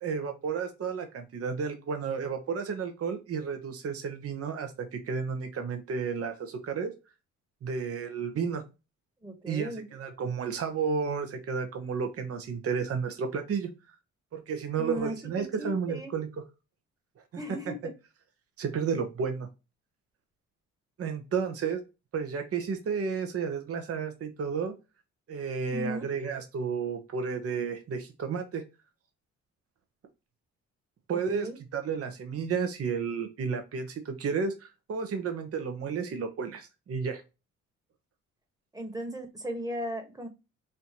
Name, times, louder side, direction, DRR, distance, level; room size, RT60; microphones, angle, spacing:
voice 1, 0.0-6.9 7.6-8.6 9.5-13.7 14.3-16.4 17.7-17.8 18.6-19.5 21.0-21.8 22.1-24.7 25.3-28.6 31.1-37.2, right 6 dB, 50° right, 6 dB, 0.9 m, -32 dB
voice 2, 9.2-9.8 14.8-15.1 15.6-16.1 17.4-17.7 25.7-26.0 31.3-31.6 38.7-40.3, equal, 10° right, 5 dB, 1.3 m, -36 dB
5.5 x 2.7 x 2.9 m, 0.27 s
cardioid pair, 90°, 30 cm